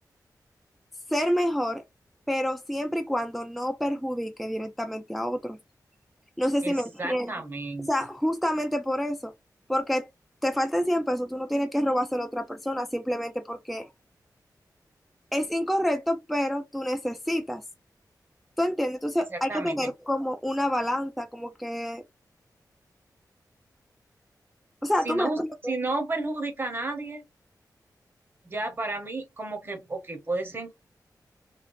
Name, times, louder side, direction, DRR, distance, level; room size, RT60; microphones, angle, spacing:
voice 1, 1.1-1.8 2.3-5.6 6.4-7.3 7.9-9.3 9.7-10.1 10.4-13.9 15.3-17.6 18.6-22.0 24.8-25.7, equal, ahead, 0.3 m, -28 dB
voice 2, 6.6-7.9 19.3-19.8 25.0-27.2 28.4-30.7, right 2 dB, 30° right, 0.9 m, -32 dB
3.1 x 2.4 x 2.5 m
wide cardioid pair, 150°, 7 cm